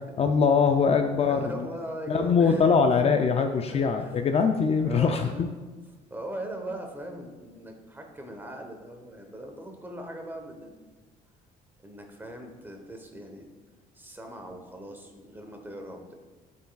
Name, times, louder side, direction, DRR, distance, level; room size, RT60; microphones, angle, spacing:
voice 1, 0.2-1.7 2.1-5.5, left 5 dB, 35° left, 6 dB, 0.4 m, -22 dB
voice 2, 1.3-2.7 3.7-4.3 4.8-5.5 6.1-10.8 11.8-13.5 13.9-16.2, right 1 dB, 10° right, 3 dB, 1.0 m, -40 dB
11.0 x 4.5 x 2.3 m, 1.3 s
cardioid pair, 110°, 17 cm